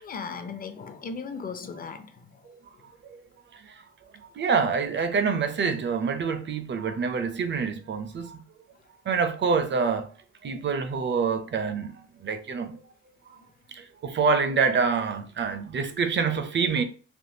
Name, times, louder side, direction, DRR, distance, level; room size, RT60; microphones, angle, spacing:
voice 1, 0.0-2.4, left 5 dB, 30° left, 0.5 m, -37 dB
voice 2, 4.3-8.4 9.1-10.1 10.4-12.8 13.7-16.8, right 5 dB, 40° right, 0.5 m, -26 dB
3.5 x 2.2 x 2.7 m
cardioid pair, 90°, 30 cm